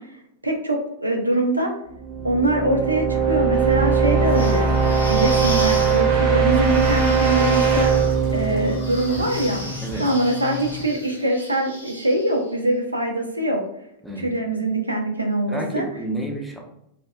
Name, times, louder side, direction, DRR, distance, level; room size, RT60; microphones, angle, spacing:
voice 1, 0.4-1.7 2.2-4.7 5.1-7.9 8.3-9.6 9.9-13.6 14.2-15.9, right 1 dB, 85° right, 2 dB, 0.4 m, -23 dB
sound 1, 2.0-9.8, right 5 dB, 45° right, 0.7 m, -20 dB
sound 2, 4.2-12.5, equal, 85° left, 0.6 m, -36 dB
sound 3, 7.2-10.9, left 6 dB, 40° left, 0.6 m, -35 dB
voice 2, 15.5-16.6, right 1 dB, ahead, 0 dB, 0.5 m, -30 dB
2.6 x 2.4 x 2.2 m, 0.79 s
figure-of-eight pair, 90°, 0 cm